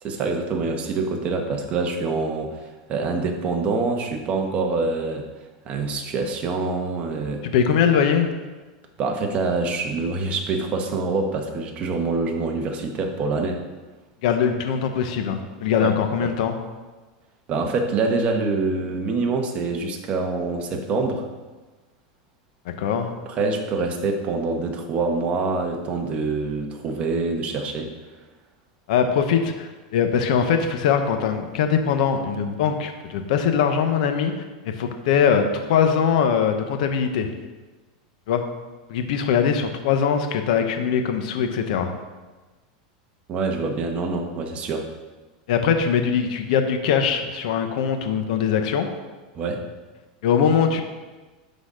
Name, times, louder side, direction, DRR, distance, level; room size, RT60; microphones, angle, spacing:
voice 1, 0.0-5.3 5.6-7.4 9.0-13.6 15.8-15.9 16.2-16.3 17.5-21.3 23.2-27.9 43.3-44.9 49.3-49.6, right 3 dB, 30° right, 3 dB, 1.2 m, -25 dB
voice 2, 7.4-8.3 14.2-16.6 22.8-23.1 28.9-34.3 34.8-37.3 38.3-38.4 38.9-41.9 45.5-48.9 50.2-50.8, left 7 dB, 70° left, 6 dB, 0.9 m, -21 dB
11.5 x 4.1 x 5.0 m, 1.3 s
supercardioid pair, 145°, 4 cm